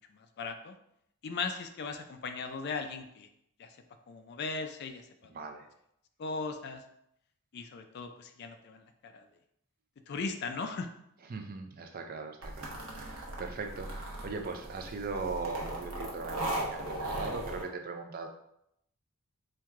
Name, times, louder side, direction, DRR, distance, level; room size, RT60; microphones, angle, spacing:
voice 1, 0.1-0.8 1.2-3.3 3.6-3.8 4.1-5.3 6.2-6.8 7.5-9.3 10.1-10.9, left 4 dB, 50° left, 7 dB, 0.3 m, -38 dB
voice 2, 5.3-5.7 11.3-18.3, right 4 dB, 40° right, 5 dB, 0.4 m, -39 dB
sound 1, 12.4-17.6, right 1 dB, 75° right, 0.9 m, -38 dB
4.5 x 2.3 x 3.6 m, 0.76 s
head